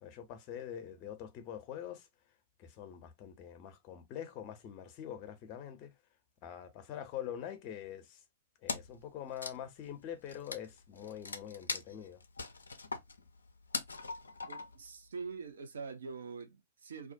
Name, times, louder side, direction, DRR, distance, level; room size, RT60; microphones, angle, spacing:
voice 1, 0.0-2.1 2.6-5.9 6.4-8.2 8.6-12.2, left 10 dB, 40° left, 0.6 m, -44 dB
Wood, 8.7-9.0 9.3-14.9, left 4 dB, 85° left, 0.4 m, -41 dB
voice 2, 14.5-17.1, right 5 dB, 70° right, 0.7 m, -44 dB
2.4 x 2.1 x 2.6 m
figure-of-eight pair, 105°, 0 cm